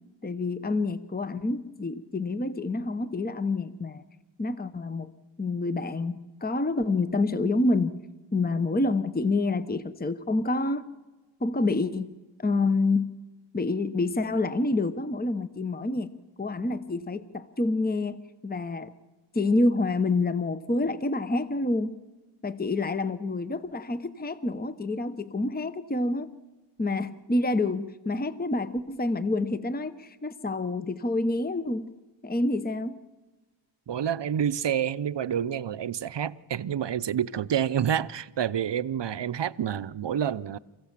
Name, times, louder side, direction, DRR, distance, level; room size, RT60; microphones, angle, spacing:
voice 1, 0.2-4.0 4.4-5.1 5.4-8.0 8.3-10.9 11.4-12.1 12.4-13.1 13.5-16.1 16.4-18.9 19.3-21.9 22.4-26.3 26.8-31.9 32.2-33.0, left 2 dB, 20° left, 0.9 m, -27 dB
voice 2, 33.9-40.6, right 9 dB, 60° right, 0.7 m, -28 dB
28.0 x 15.5 x 7.4 m
wide cardioid pair, 75°, 48 cm